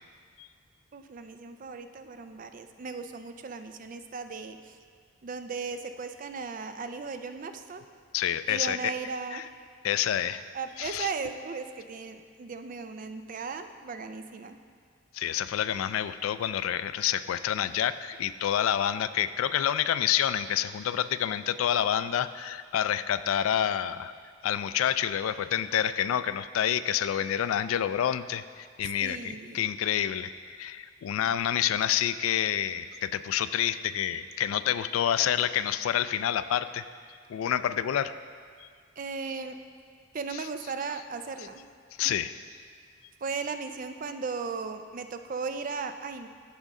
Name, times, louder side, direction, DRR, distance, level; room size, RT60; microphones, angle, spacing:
voice 1, 0.9-4.8 5.2-7.9 8.5-9.4 10.5-14.6 29.0-29.6 39.0-39.6 40.1-41.7 42.0-42.1 43.2-46.3, right 4 dB, 40° right, 8 dB, 0.4 m, -36 dB
voice 2, 8.1-8.8 9.3-9.4 9.8-10.4 10.8-11.1 15.1-24.1 24.4-36.8 37.3-38.1 42.0-42.4, left 10 dB, 85° left, 13 dB, 0.3 m, -28 dB
14.0 x 5.2 x 3.6 m, 2.1 s
head